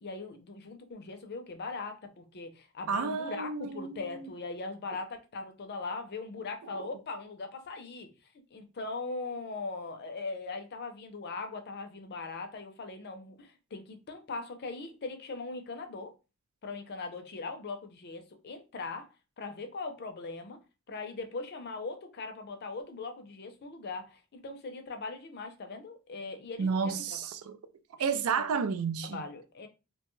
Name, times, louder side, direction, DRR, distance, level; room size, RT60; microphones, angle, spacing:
voice 1, 0.0-8.1 8.5-16.1 16.6-19.1 19.4-20.6 20.9-27.2 28.1-28.2 29.1-29.7, left 3 dB, 50° left, 0.5 m, -40 dB
voice 2, 2.9-4.3 26.6-27.6 28.0-29.2, right 5 dB, 75° right, 0.4 m, -31 dB
2.8 x 2.2 x 3.0 m
head